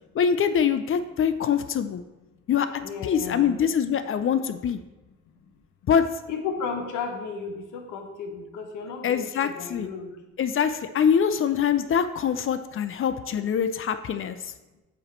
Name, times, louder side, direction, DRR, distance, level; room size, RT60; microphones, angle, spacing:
voice 1, 0.1-2.0 2.5-4.8 5.9-6.0 9.0-9.9 10.4-14.5, left 7 dB, 45° left, 10 dB, 0.4 m, -24 dB
voice 2, 2.8-3.5 6.3-10.1, left 5 dB, 85° left, 4 dB, 1.0 m, -34 dB
7.7 x 3.1 x 4.4 m, 1.1 s
cardioid pair, 90°, 30 cm